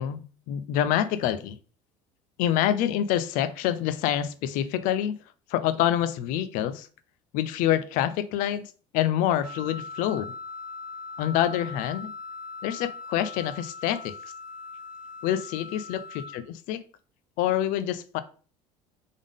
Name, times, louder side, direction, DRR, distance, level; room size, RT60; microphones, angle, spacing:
voice 1, 0.0-1.6 2.4-5.2 5.5-6.9 7.3-10.3 11.2-12.1 12.6-14.1 15.2-16.8 17.4-18.2, left 11 dB, 70° left, 13 dB, 0.5 m, -26 dB
Wind instrument woodwind instrument, 9.4-16.4, left 4 dB, 10° right, 1.0 m, -40 dB
3.6 x 3.6 x 3.6 m, 0.38 s
supercardioid pair, 90°, 14 cm